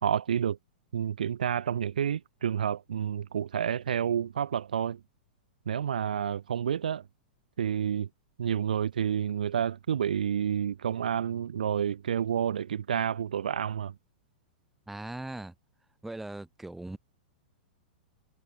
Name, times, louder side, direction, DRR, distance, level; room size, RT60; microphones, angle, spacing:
voice 1, 0.0-0.6 0.9-5.0 5.7-7.0 7.6-8.1 8.4-13.9, right 8 dB, 60° right, 0.6 m, -29 dB
voice 2, 14.9-15.5 16.0-17.0, right 2 dB, 5° right, 1.3 m, -39 dB
figure-of-eight pair, 100°, 5 cm